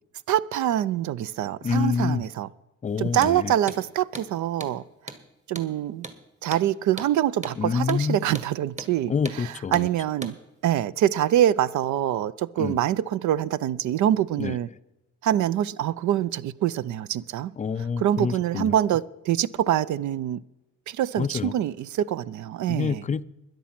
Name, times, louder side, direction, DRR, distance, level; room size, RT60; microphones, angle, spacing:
voice 1, 0.3-2.5 3.0-4.8 5.5-6.1 6.4-9.1 9.7-10.4 10.6-14.7 15.2-17.5 18.0-20.4 20.9-23.0, right 11 dB, 70° right, 0.5 m, -25 dB
voice 2, 1.6-2.3 2.8-3.5 7.6-8.2 9.1-9.9 12.6-12.8 14.4-14.6 17.6-18.7 21.2-21.5 22.7-23.2, left 6 dB, 25° left, 0.4 m, -27 dB
Hammer, 3.1-3.4 3.7-3.8 4.1-4.3 4.6-4.8 5.1-5.2 5.6-5.7 6.0-6.2 6.5-6.7 7.0-7.1 7.4-7.6 7.9-8.0 8.4-8.5 8.8-8.9 9.3-9.4 9.7-9.9 10.2-10.4, right 2 dB, 25° right, 1.5 m, -37 dB
13.0 x 10.5 x 5.9 m
cardioid pair, 90°, 30 cm